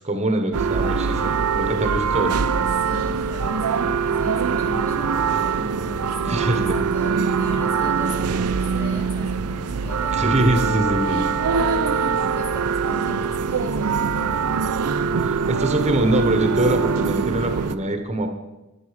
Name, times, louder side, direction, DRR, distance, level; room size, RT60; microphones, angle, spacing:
voice 1, 0.0-2.3 6.3-6.8 10.1-11.3 15.2-18.3, right 1 dB, 30° right, 6 dB, 1.1 m, -23 dB
sound 1, 0.5-17.8, right 5 dB, 85° right, 0.6 m, -23 dB
voice 2, 2.7-10.2 11.5-14.8, left 1 dB, 30° left, 3 dB, 2.4 m, -38 dB
11.0 x 9.9 x 5.0 m, 1.1 s
head